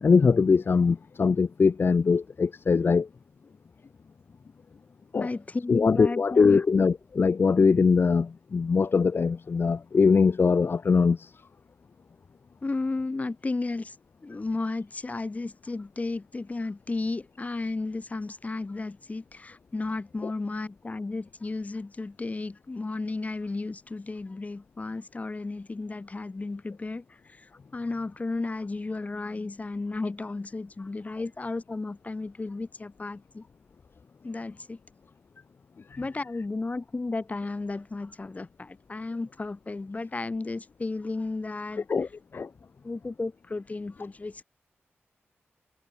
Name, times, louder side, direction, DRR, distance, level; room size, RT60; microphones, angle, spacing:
voice 1, 0.0-3.1 5.1-5.3 5.7-11.3 20.2-20.3 41.9-42.5, left 5 dB, 55° left, 1.3 m, -22 dB
voice 2, 5.2-6.6 12.6-13.9 14.2-27.0 27.7-33.5 34.2-34.8 36.0-41.9 42.8-44.4, left 3 dB, 35° left, 3.2 m, -33 dB
cardioid pair, 80°, 5 cm